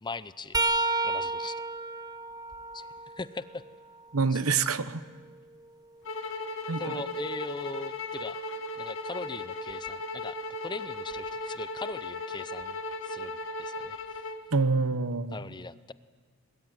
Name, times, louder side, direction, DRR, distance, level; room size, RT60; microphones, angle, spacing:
voice 1, 0.0-0.6 1.0-1.6 2.7-3.6 4.3-4.4 6.8-8.4 8.7-10.4 10.6-14.3 15.3-15.9, left 3 dB, 20° left, 15 dB, 0.6 m, -40 dB
sound 1, 0.5-4.3 4.8-6.8 9.7-9.9 11.1-11.3 12.6-12.7, right 3 dB, 20° right, 0.8 m, -33 dB
voice 2, 4.1-5.0 6.7-6.9 14.5-15.4, right 4 dB, 80° right, 13 dB, 1.0 m, -26 dB
sound 2, 6.0-14.4, left 2 dB, 65° left, 1.8 m, -37 dB
22.0 x 21.5 x 9.1 m, 1.5 s
head